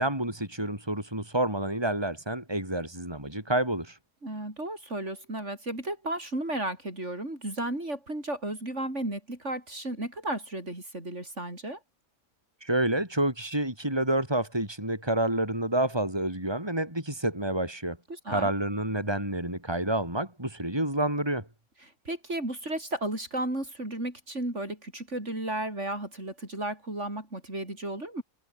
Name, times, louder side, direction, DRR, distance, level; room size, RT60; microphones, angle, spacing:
voice 1, 0.0-4.0 12.6-18.0 18.3-21.5, right 1 dB, 15° right, 5.6 m, -28 dB
voice 2, 4.2-11.8 18.1-18.5 21.8-28.2, right 1 dB, 55° right, 7.1 m, -34 dB
omnidirectional pair, 1.5 m